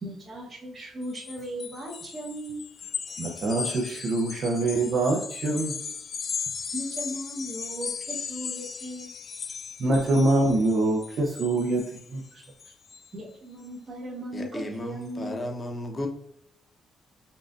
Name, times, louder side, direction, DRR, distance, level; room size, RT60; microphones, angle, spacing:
voice 1, 0.0-2.6 6.7-9.1 13.1-15.4, right 1 dB, 40° right, -6 dB, 1.1 m, -37 dB
sound 1, 1.0-13.1, left 6 dB, 50° left, 0.3 m, -37 dB
voice 2, 3.2-5.7 9.8-11.8 12.1-12.2, right 2 dB, 60° right, -2 dB, 0.7 m, -24 dB
voice 3, 14.3-16.1, left 1 dB, 30° left, 3 dB, 0.9 m, -34 dB
5.5 x 2.6 x 2.5 m, 0.72 s
cardioid pair, 90°, 0 cm